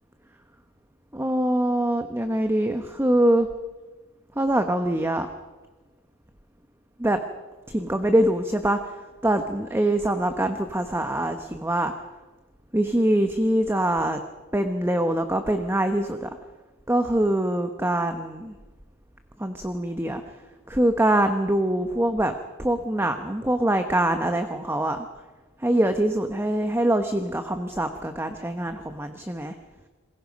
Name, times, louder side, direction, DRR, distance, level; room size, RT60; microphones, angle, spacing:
voice 1, 1.1-3.5 4.4-5.3 7.0-7.2 7.7-8.8 9.2-11.9 12.7-14.2 14.5-16.3 16.9-18.5 19.4-20.2 20.7-22.3 22.6-25.1 25.6-29.5, right 1 dB, 10° right, 7 dB, 1.0 m, -24 dB
28.0 x 21.0 x 5.2 m, 1.2 s
head